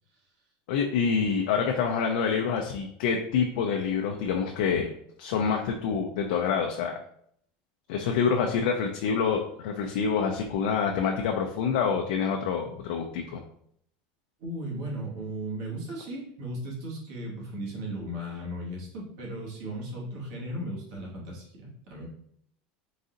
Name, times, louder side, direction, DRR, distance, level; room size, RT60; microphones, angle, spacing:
voice 1, 0.7-4.9 5.2-7.0 7.9-13.4, left 6 dB, 75° left, 2 dB, 0.5 m, -27 dB
voice 2, 14.4-22.1, right 1 dB, 60° right, -4 dB, 1.6 m, -36 dB
4.0 x 2.6 x 3.8 m, 0.69 s
supercardioid pair, 165°, 5 cm